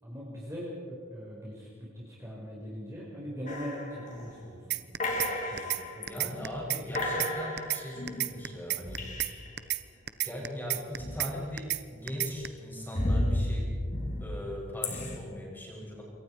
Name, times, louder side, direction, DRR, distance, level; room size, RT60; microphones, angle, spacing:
voice 1, 0.0-4.8 5.4-6.3 14.0-14.4, equal, 15° right, -6 dB, 5.1 m, -41 dB
sound 1, 3.5-4.4 5.0-6.2 6.6-6.7 6.9-9.6 10.9-11.7 12.1-15.2, left 1 dB, 35° left, 3.1 m, -33 dB
sound 2, 4.7-5.3 5.6-5.8 6.1-7.3 7.6-7.8 8.1-9.3 9.6-9.8 10.1-11.3 11.6-11.8 12.1-12.5, right 14 dB, 50° right, 0.9 m, -30 dB
voice 2, 6.0-9.1 10.2-13.8 14.2-16.0, left 1 dB, 10° left, -4 dB, 7.5 m, -39 dB
27.0 x 24.0 x 4.9 m, 2.1 s
head